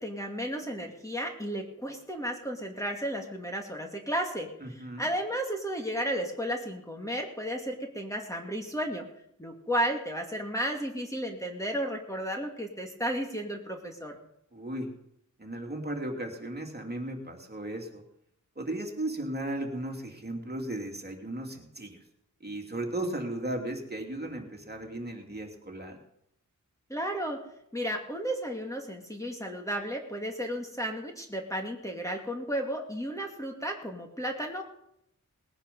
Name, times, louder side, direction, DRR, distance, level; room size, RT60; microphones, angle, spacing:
voice 1, 0.0-9.0 9.4-14.2 26.9-27.4 27.7-34.6, equal, 10° left, 2 dB, 2.2 m, -33 dB
voice 2, 4.6-5.1 14.5-14.9 15.4-18.0 18.6-22.0 22.4-26.0, right 1 dB, 30° right, 2 dB, 2.8 m, -36 dB
20.0 x 9.9 x 5.4 m, 0.75 s
wide cardioid pair, 85°, 32 cm